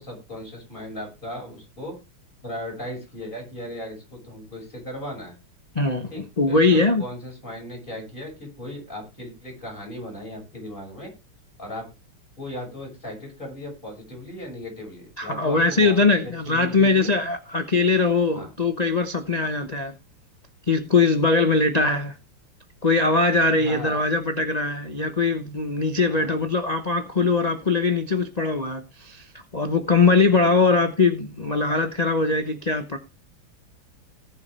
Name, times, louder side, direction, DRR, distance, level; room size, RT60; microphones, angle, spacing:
voice 1, 0.0-2.0 2.4-5.4 6.1-11.1 11.6-11.9 12.4-17.1 18.3-18.5 23.6-24.1 26.1-26.3, left 1 dB, 20° left, 6.4 m, -37 dB
voice 2, 5.7-6.1 6.4-7.0 15.2-19.9 20.7-22.1 22.8-29.2 29.5-33.0, left 3 dB, 40° left, 0.5 m, -21 dB
18.5 x 7.2 x 3.4 m
omnidirectional pair, 2.4 m